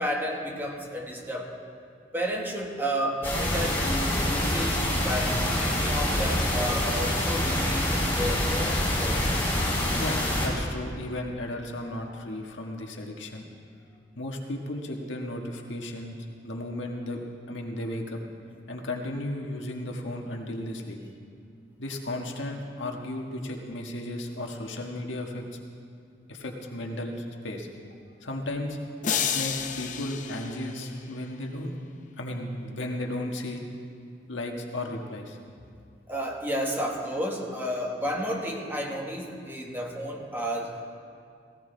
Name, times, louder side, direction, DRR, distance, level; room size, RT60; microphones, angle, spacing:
voice 1, 0.0-1.5 2.1-9.3 36.1-40.9, equal, 10° right, 0 dB, 1.6 m, -32 dB
sound 1, 3.2-10.5, left 1 dB, 10° left, 3.9 m, -26 dB
voice 2, 9.9-13.4 14.1-16.2 16.4-17.2 17.5-18.2 18.7-21.0 21.8-25.4 26.3-27.7 28.2-28.8 29.3-31.7 32.2-33.8 34.3-35.4, left 1 dB, 90° left, 1 dB, 1.6 m, -34 dB
sound 2, 29.0-31.3, left 7 dB, 45° left, 0.7 m, -31 dB
18.5 x 16.5 x 3.4 m, 2.3 s
head